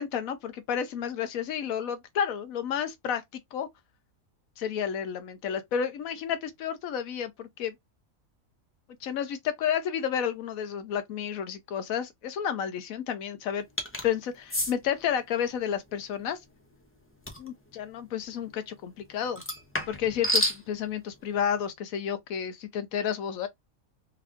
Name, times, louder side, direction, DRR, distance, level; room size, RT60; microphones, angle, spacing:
voice 1, 0.0-3.2 3.5-3.7 4.6-7.8 9.0-13.6 14.0-16.4 17.4-19.4 19.9-23.5, left 8 dB, 75° left, 1.1 m, -31 dB
sound 1, 13.8-14.1 14.5-14.7 17.3-17.5 19.4-20.6, left 1 dB, 15° left, 0.5 m, -28 dB
3.5 x 2.3 x 3.4 m
omnidirectional pair, 1.5 m